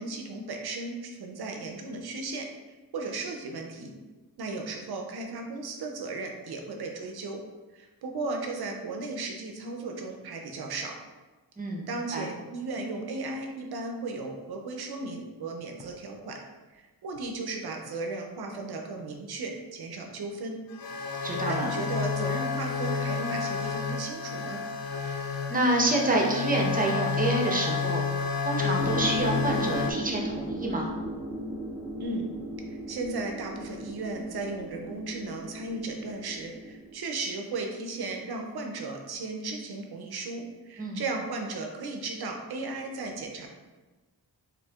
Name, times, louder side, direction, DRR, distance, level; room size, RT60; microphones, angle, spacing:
voice 1, 0.0-3.9 4.4-7.4 7.7-11.0 11.9-16.4 16.7-20.6 21.5-24.6 32.0-32.3 32.7-43.5, right 3 dB, 65° right, 2 dB, 0.6 m, -35 dB
sound 1, 15.8-15.9 17.2-17.3 17.9-18.0 19.0-19.1 20.7-29.9, left 5 dB, 60° left, 0.5 m, -30 dB
voice 2, 21.2-21.7 25.5-28.0 28.4-30.9 40.8-41.0, right 1 dB, 20° right, 0 dB, 0.7 m, -27 dB
sound 2, 28.8-36.9, equal, 10° left, 0.9 m, -36 dB
4.3 x 2.6 x 2.3 m, 1.2 s
cardioid pair, 60°, 41 cm